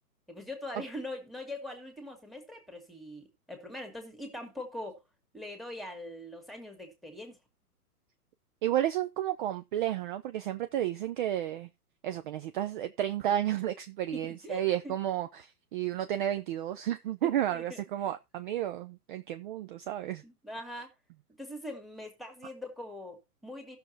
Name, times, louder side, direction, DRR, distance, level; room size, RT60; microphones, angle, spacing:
voice 1, 0.3-5.0 5.3-7.4 14.1-14.9 17.2-17.8 20.2-20.9 21.4-23.8, left 1 dB, ahead, 2.0 m, -42 dB
voice 2, 8.6-11.7 12.0-20.2, right 12 dB, 35° right, 0.6 m, -32 dB
16.5 x 6.6 x 2.8 m
hypercardioid pair, 125°, 46 cm